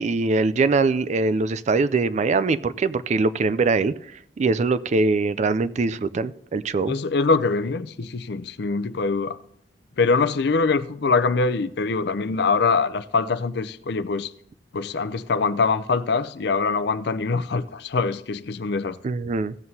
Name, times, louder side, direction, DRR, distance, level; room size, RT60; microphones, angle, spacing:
voice 1, 0.0-3.9 4.4-7.0 19.0-19.5, right 3 dB, 40° right, 0.4 m, -22 dB
voice 2, 6.9-9.4 10.0-14.3 14.7-19.0, left 4 dB, 65° left, 0.5 m, -23 dB
15.5 x 7.7 x 2.7 m
head